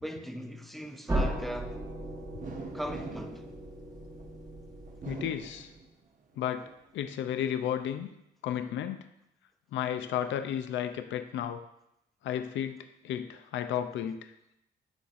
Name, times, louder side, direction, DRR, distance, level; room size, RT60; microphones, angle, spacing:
voice 1, 0.0-1.8 2.7-3.5, equal, ahead, 0.6 m, -38 dB
sound 1, 1.1-5.8, right 1 dB, 20° right, 1.2 m, -36 dB
sound 2, 2.4-4.3 4.9-6.2 6.7-7.5, right 4 dB, 45° right, 0.8 m, -44 dB
voice 2, 5.0-5.7 6.4-6.7 6.9-8.1 8.4-9.1 9.7-11.6 12.2-14.3, left 10 dB, 70° left, 0.5 m, -33 dB
11.0 x 4.0 x 2.5 m
cardioid pair, 90°, 20 cm